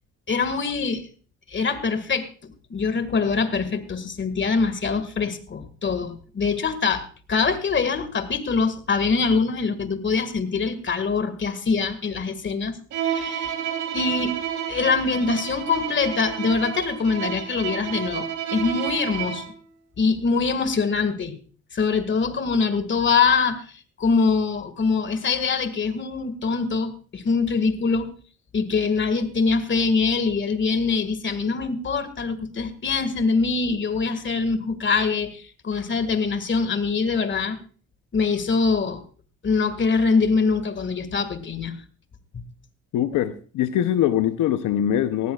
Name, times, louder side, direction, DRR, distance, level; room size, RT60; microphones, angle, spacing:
voice 1, 0.3-1.1 1.5-13.6 13.9-14.4 14.7-19.5 20.0-21.4 21.7-28.1 28.5-37.6 38.1-39.0 39.4-41.8 42.3-42.4, left 4 dB, 40° left, 11 dB, 1.9 m, -24 dB
Bowed string instrument, 12.9-19.6, right 9 dB, 80° right, 3.5 m, -30 dB
voice 2, 42.9-45.3, left 11 dB, 85° left, 11 dB, 0.8 m, -22 dB
18.5 x 16.0 x 2.4 m, 0.40 s
cardioid pair, 90°, 30 cm